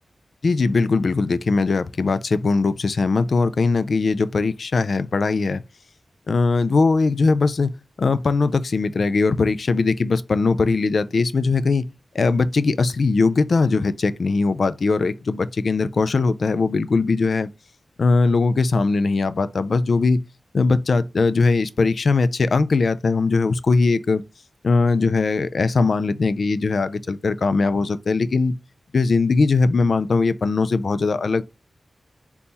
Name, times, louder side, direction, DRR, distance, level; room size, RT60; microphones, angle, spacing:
voice 1, 0.4-5.6 6.3-7.7 8.0-11.9 12.1-17.5 18.0-20.2 20.5-24.2 24.6-28.6 28.9-31.4, left 4 dB, 65° left, 0.3 m, -20 dB
4.0 x 2.9 x 3.5 m
wide cardioid pair, 95°, 0 cm